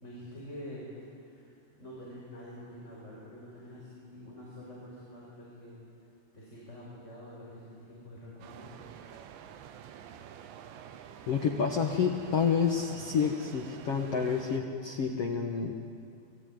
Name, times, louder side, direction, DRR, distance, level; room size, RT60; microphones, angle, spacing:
voice 1, 0.0-0.9 1.2-1.5 1.8-5.8 6.3-8.7, equal, 15° left, -6 dB, 5.9 m, -46 dB
sound 1, 8.4-14.6, right 9 dB, 85° right, 3.4 m, -48 dB
voice 2, 11.3-15.7, left 6 dB, 90° left, 2 dB, 1.3 m, -29 dB
28.5 x 22.0 x 9.3 m, 2.4 s
omnidirectional pair, 5.1 m